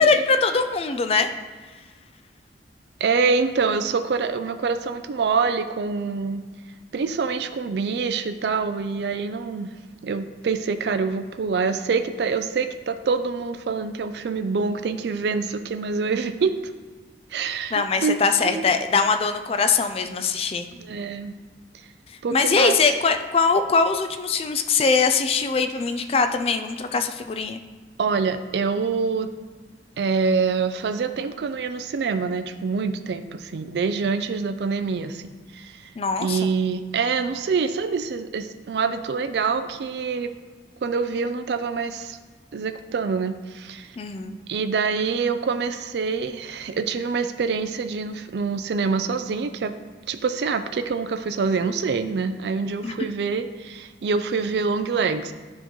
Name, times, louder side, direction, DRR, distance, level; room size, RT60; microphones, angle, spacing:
voice 1, 0.0-1.3 17.7-20.7 22.3-27.6 36.0-36.4 44.0-44.4 52.8-52.9, left 4 dB, 35° left, 8 dB, 0.3 m, -22 dB
voice 2, 3.0-6.4 6.9-9.7 10.0-16.6 17.3-18.2 18.5-18.7 20.7-21.3 22.2-22.8 28.0-29.3 30.0-35.9 36.2-40.3 40.8-42.2 42.5-43.9 44.5-49.7 50.1-55.3, right 5 dB, 70° right, 9 dB, 0.4 m, -25 dB
10.5 x 3.8 x 3.0 m, 1.4 s
head